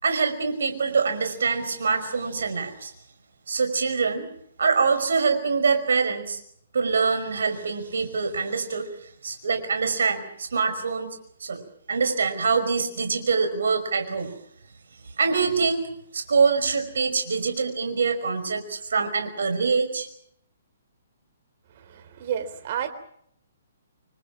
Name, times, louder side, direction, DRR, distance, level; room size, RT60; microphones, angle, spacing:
voice 1, 0.0-2.9 3.5-4.3 4.6-6.4 6.7-8.9 9.2-11.6 11.9-14.3 15.2-15.8 16.1-20.1, right 5 dB, 65° right, 8 dB, 5.3 m, -24 dB
voice 2, 21.8-22.9, right 9 dB, 45° right, 9 dB, 3.5 m, -31 dB
26.5 x 25.0 x 6.0 m, 0.70 s
figure-of-eight pair, 130°, 0 cm